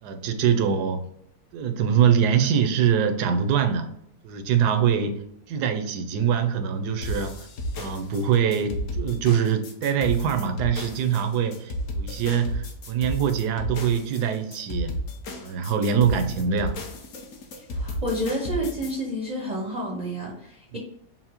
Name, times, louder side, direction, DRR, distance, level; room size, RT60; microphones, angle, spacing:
voice 1, 0.0-1.0 1.5-3.9 4.2-7.5 7.8-14.9 15.4-16.8 20.7-20.8, right 7 dB, 85° right, 1.2 m, -23 dB
sound 1, 7.0-18.9, equal, 60° left, 1.0 m, -33 dB
voice 2, 17.7-20.8, equal, 45° right, 0.5 m, -30 dB
5.6 x 2.1 x 2.9 m
omnidirectional pair, 1.7 m